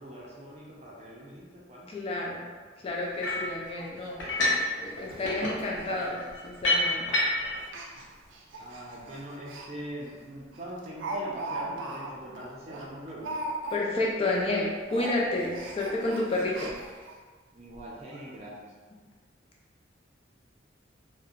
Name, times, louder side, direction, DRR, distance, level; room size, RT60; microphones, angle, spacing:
voice 1, 0.0-1.9 8.6-13.3 17.5-18.7, equal, 35° right, -5 dB, 0.5 m, -42 dB
voice 2, 1.9-2.5 2.8-4.2 4.8-7.2 13.7-16.7, left 2 dB, 30° left, -2 dB, 0.3 m, -30 dB
Speech, 2.9-3.0 3.3-3.4 3.8-3.9 4.2-4.3 4.8-4.9 5.2-5.5 5.7-5.9 6.6-6.9 7.6-9.7 10.1-10.2 10.5-14.1 14.4-14.6 14.9-17.2 17.7-17.8 18.1-18.2, right 2 dB, 90° right, 0.4 m, -39 dB
sound 1, 3.2-3.5 4.2-4.7 5.0-7.6, left 2 dB, 80° left, 0.6 m, -28 dB
2.7 x 2.1 x 2.4 m, 1.4 s
head